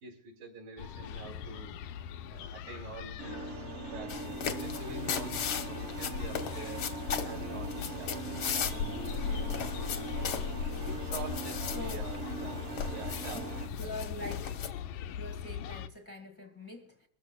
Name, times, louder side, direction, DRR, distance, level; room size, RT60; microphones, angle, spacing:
voice 1, 0.0-1.8 2.3-6.9 7.2-10.4 10.6-13.6, right 4 dB, 75° right, 4.2 m, -47 dB
sound 1, 0.8-15.9, left 7 dB, 80° left, 2.1 m, -39 dB
sound 2, 3.2-13.7, right 4 dB, 55° right, 2.0 m, -41 dB
sound 3, 4.1-14.7, left 7 dB, 60° left, 1.4 m, -38 dB
voice 2, 13.3-14.6 15.1-17.1, left 1 dB, 10° left, 0.8 m, -44 dB
22.5 x 14.5 x 2.3 m
omnidirectional pair, 3.5 m